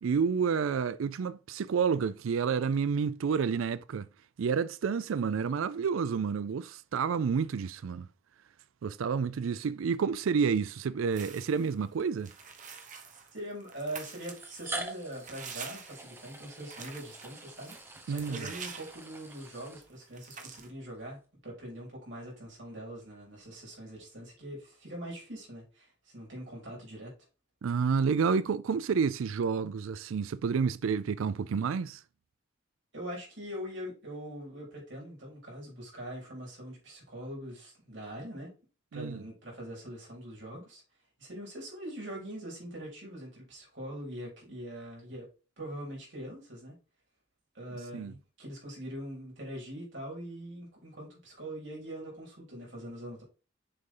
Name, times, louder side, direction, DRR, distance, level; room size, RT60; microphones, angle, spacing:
voice 1, 0.0-4.1 4.4-8.1 8.8-12.3 18.1-18.5 27.6-32.0 38.9-39.2 47.9-48.1, right 6 dB, 90° right, 0.4 m, -29 dB
sound 1, 11.0-11.1 12.0-12.1 13.3-13.4 14.3-20.3, right 2 dB, 10° right, 1.0 m, -44 dB
sound 2, 11.1-11.7 12.2-19.6 19.8-19.9 20.1-20.7, right 6 dB, 40° right, 1.1 m, -46 dB
voice 2, 13.3-17.8 18.1-27.1 32.9-38.5 38.9-40.8 41.2-45.3 45.6-46.7 47.5-53.2, right 1 dB, 65° right, 4.1 m, -42 dB
6.8 x 5.4 x 3.8 m
head